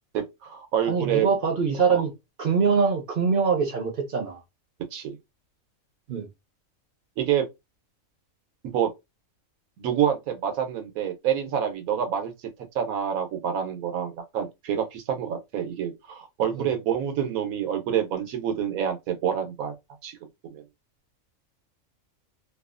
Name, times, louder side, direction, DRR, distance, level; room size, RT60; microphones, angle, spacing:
voice 1, 0.1-1.3 1.9-2.0 4.9-5.2 7.2-7.4 8.7-8.9 9.8-12.3 12.7-19.7 20.0-20.2 20.4-20.6, right 9 dB, 90° right, 1.1 m, -27 dB
voice 2, 0.8-2.1 2.4-4.4 6.1-6.3 16.5-16.7, right 5 dB, 55° right, 0.6 m, -23 dB
2.7 x 2.3 x 2.4 m
omnidirectional pair, 1.4 m